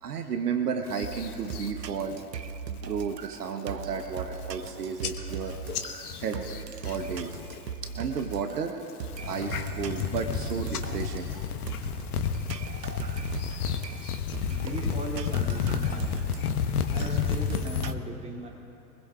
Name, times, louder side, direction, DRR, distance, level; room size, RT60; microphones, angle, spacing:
voice 1, 0.0-2.2 2.7-5.6 6.2-6.4 6.8-8.8 9.2-11.3, right 6 dB, 70° right, 6 dB, 1.2 m, -33 dB
sound 1, 0.9-1.7 2.1-2.5 2.9-3.2 3.7-3.8 4.0-4.7 5.0-7.6 7.8-8.4 8.9-17.9, left 7 dB, 65° left, 1.2 m, -31 dB
sound 2, 1.0-17.9, right 6 dB, 90° right, 0.6 m, -39 dB
voice 2, 14.5-16.2 16.9-18.5, right 2 dB, 15° right, -2 dB, 2.6 m, -38 dB
24.0 x 20.5 x 2.4 m, 2.7 s
figure-of-eight pair, 90°, 48 cm